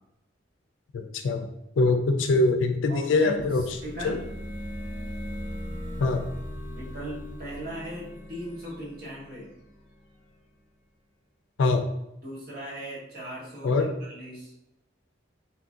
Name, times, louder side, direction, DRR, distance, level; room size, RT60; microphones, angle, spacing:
voice 1, 0.9-1.5 1.8-3.6 4.0-4.2 6.0-6.2 11.6-11.8 13.6-13.9, left 3 dB, 85° left, 6 dB, 0.4 m, -23 dB
voice 2, 2.9-4.2 6.7-9.5 12.2-14.5, right 1 dB, 50° right, -5 dB, 1.0 m, -38 dB
sound 1, 3.2-10.0, equal, 35° left, 0.6 m, -38 dB
2.9 x 2.4 x 2.6 m, 0.84 s
head